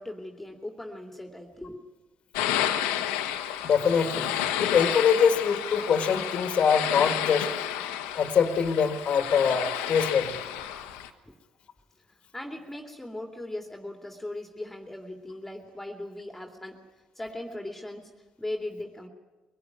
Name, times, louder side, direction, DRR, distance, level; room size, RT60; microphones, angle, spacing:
voice 1, 0.0-1.8 11.3-11.4 12.1-16.8 17.2-18.1 18.4-19.1, left 1 dB, 10° left, 3 dB, 2.7 m, -38 dB
sound 1, 2.3-11.1, left 11 dB, 85° left, 1.3 m, -31 dB
voice 2, 3.6-4.3 4.6-7.5 8.2-10.4, left 6 dB, 55° left, 8 dB, 1.8 m, -23 dB
23.5 x 18.0 x 9.6 m, 1.2 s
supercardioid pair, 65°, 2 cm